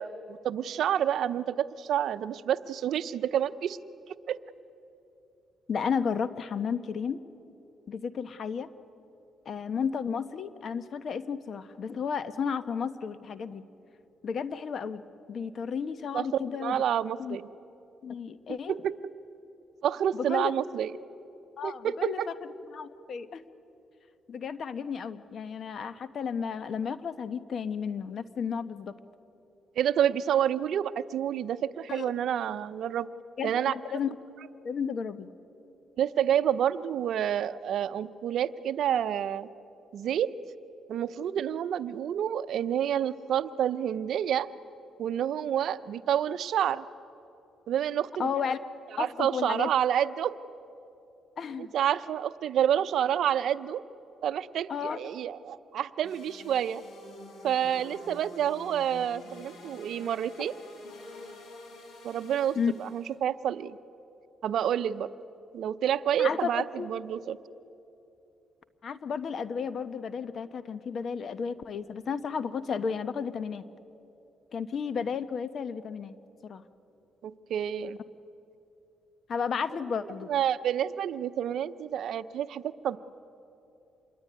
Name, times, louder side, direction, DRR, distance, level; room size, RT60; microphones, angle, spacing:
voice 1, 0.0-3.8 4.1-4.4 16.1-16.3 16.6-17.4 18.7-18.8 19.8-20.9 21.6-22.3 29.8-33.1 33.4-33.7 36.0-39.5 39.9-40.3 40.9-44.5 45.0-46.8 47.7-48.3 49.0-50.3 51.6-53.8 54.2-56.8 57.4-60.5 62.0-63.8 64.4-65.1 65.5-67.4 77.2-78.0 80.3-83.0, right 10 dB, 70° right, 14 dB, 0.7 m, -28 dB
voice 2, 5.7-7.2 7.9-8.7 9.4-13.6 14.2-15.0 15.3-16.8 17.2-17.4 18.0-18.7 20.1-20.5 21.6-22.2 22.7-23.4 24.3-28.9 31.9-32.1 33.4-34.1 34.6-35.3 48.2-48.6 49.0-49.7 51.4-51.7 54.7-55.0 62.5-62.7 66.2-66.9 68.8-73.6 74.5-76.1 76.4-76.6 79.3-80.3, left 6 dB, 55° left, 12 dB, 1.2 m, -33 dB
sound 1, 56.0-63.1, left 2 dB, 70° left, 5.9 m, -48 dB
26.5 x 21.5 x 9.5 m, 2.9 s
cardioid pair, 90°, 0 cm